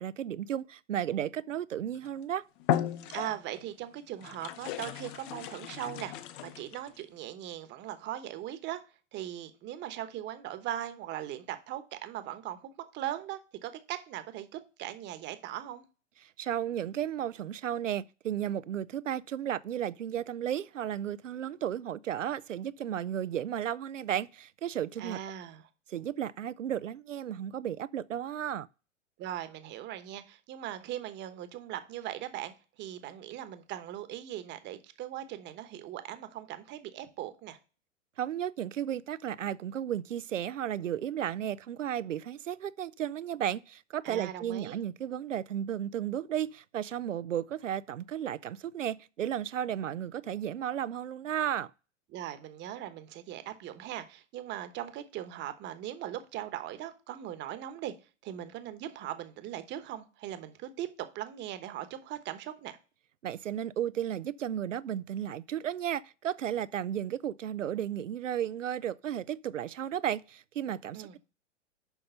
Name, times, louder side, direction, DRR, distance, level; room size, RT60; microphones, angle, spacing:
voice 1, 0.0-2.4 16.4-25.2 25.9-28.7 38.2-51.7 63.2-71.2, right 10 dB, 85° right, 0.5 m, -34 dB
sound 1, 1.9-2.2 2.6-3.6 4.2-7.0, left 11 dB, 45° left, 0.8 m, -35 dB
voice 2, 3.1-6.1 6.4-8.8 9.1-15.8 25.0-25.6 29.2-37.6 44.0-44.8 52.1-57.9 58.2-62.8 70.9-71.2, right 12 dB, 30° right, 1.1 m, -39 dB
7.0 x 5.3 x 5.6 m
hypercardioid pair, 105°, 36 cm